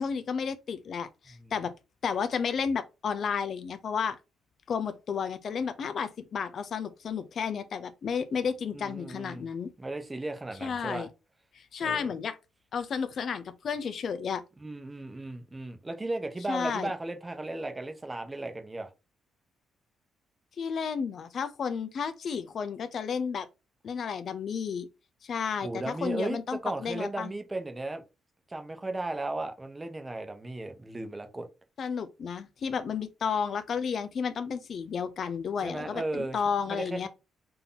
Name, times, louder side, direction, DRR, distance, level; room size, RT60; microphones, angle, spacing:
voice 1, 0.0-1.7 2.0-4.2 4.7-9.7 10.6-11.1 11.5-12.4 12.7-14.4 16.5-16.9 20.6-23.5 23.8-24.9 25.2-27.3 31.8-37.1, left 6 dB, 55° left, 0.5 m, -32 dB
voice 2, 8.7-9.5 9.8-11.1 11.8-12.1 14.6-18.9 25.6-28.0 28.5-31.5 35.6-36.4 36.7-37.1, right 2 dB, 20° right, 0.9 m, -35 dB
3.9 x 2.8 x 3.9 m
cardioid pair, 90°, 0 cm